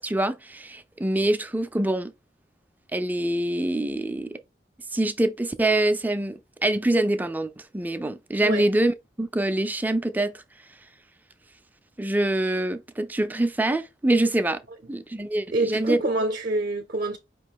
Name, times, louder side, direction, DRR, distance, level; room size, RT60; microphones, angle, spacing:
voice 1, 0.0-2.1 2.9-4.4 4.9-10.4 12.0-14.6 14.9-16.0, right 1 dB, 10° right, 0.4 m, -25 dB
voice 2, 15.5-17.2, right 2 dB, 50° right, 0.6 m, -26 dB
5.0 x 3.0 x 3.5 m
head